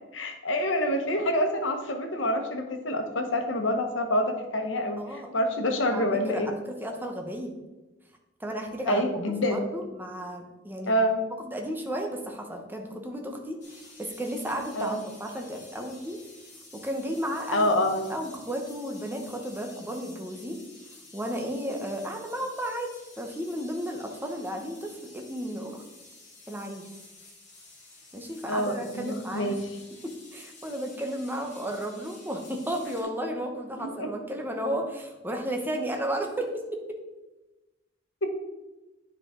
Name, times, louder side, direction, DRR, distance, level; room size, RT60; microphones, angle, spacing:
voice 1, 0.1-6.5 8.8-9.6 10.9-11.2 14.7-15.0 17.5-18.1 28.5-29.6 33.8-34.1 38.2-38.3, left 1 dB, 80° left, 5 dB, 1.1 m, -27 dB
voice 2, 5.0-5.3 5.9-6.5 6.8-7.5 8.4-9.1 9.5-10.9 11.4-16.2 16.7-17.7 18.1-20.6 21.1-22.9 23.2-25.8 26.5-26.9 28.1-29.6 30.0-37.0, equal, 10° right, 3 dB, 0.9 m, -33 dB
sound 1, 13.6-33.0, left 2 dB, 40° left, 2.4 m, -51 dB
9.6 x 5.0 x 3.7 m, 1.1 s
head